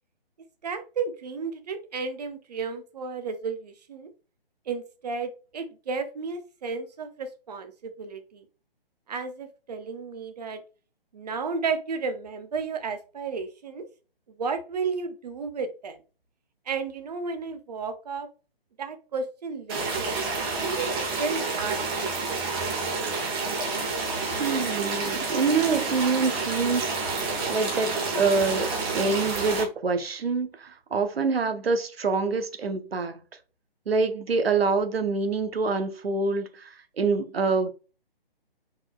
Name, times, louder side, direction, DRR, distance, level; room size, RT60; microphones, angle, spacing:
voice 1, 0.6-4.1 4.7-8.4 9.1-10.6 11.1-13.8 14.4-16.0 16.7-18.3 18.8-20.2 20.6-20.9 21.2-21.8, right 5 dB, 40° right, 0.8 m, -33 dB
sound 1, 19.7-29.6, right 3 dB, 25° right, 1.4 m, -29 dB
voice 2, 24.4-27.9 28.1-33.2 33.9-37.7, right 4 dB, 75° right, 0.9 m, -26 dB
4.4 x 4.0 x 2.3 m
figure-of-eight pair, 145°, 30 cm